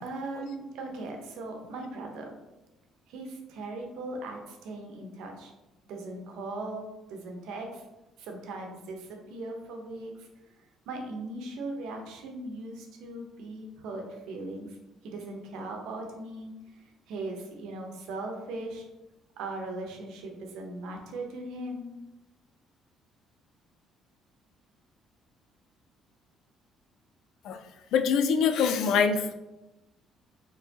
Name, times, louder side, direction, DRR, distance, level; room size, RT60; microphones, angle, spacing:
voice 1, 0.0-2.3 3.1-5.5 5.9-7.8 8.2-10.3 10.9-14.8 15.0-18.9 19.4-21.9, right 2 dB, 80° right, 2 dB, 0.8 m, -39 dB
voice 2, 27.9-29.3, left 6 dB, 75° left, 8 dB, 0.4 m, -24 dB
4.3 x 3.1 x 2.8 m, 1.0 s
supercardioid pair, 80°, 0 cm